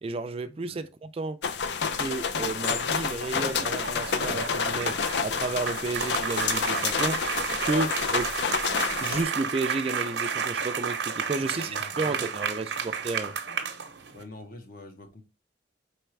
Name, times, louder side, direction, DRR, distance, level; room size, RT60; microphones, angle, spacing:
voice 1, 0.0-1.4 2.0-5.0 5.2-7.2 7.6-8.3 9.0-13.3, right 3 dB, 35° right, 0.3 m, -32 dB
sound 1, 1.4-9.2, left 5 dB, 70° left, 0.5 m, -29 dB
sound 2, 3.2-14.2, right 6 dB, 85° right, 0.7 m, -32 dB
voice 2, 11.4-12.4 14.1-15.2, left 2 dB, 55° left, 1.0 m, -45 dB
4.7 x 3.4 x 3.1 m
head